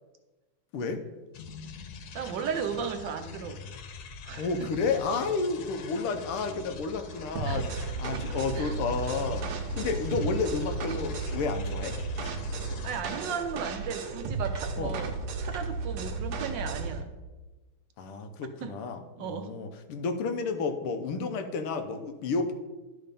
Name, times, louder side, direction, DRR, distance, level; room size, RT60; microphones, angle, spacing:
voice 1, 0.7-1.0 4.4-7.7 8.0-9.5 9.8-12.0 14.8-14.9 18.0-22.5, left 4 dB, 85° left, 7 dB, 1.7 m, -31 dB
sound 1, 1.3-13.0, left 5 dB, 70° left, 0.9 m, -44 dB
voice 2, 2.1-3.6 4.2-4.7 7.4-7.6 8.3-8.8 12.8-15.1 15.4-17.1 18.6-18.7 19.2-19.5, right 6 dB, 70° right, 7 dB, 1.2 m, -35 dB
sound 2, 7.0-16.1, right 2 dB, 40° right, 0.6 m, -51 dB
sound 3, 7.4-17.0, right 4 dB, 90° right, 1.8 m, -34 dB
11.5 x 4.4 x 5.1 m, 1.2 s
omnidirectional pair, 2.4 m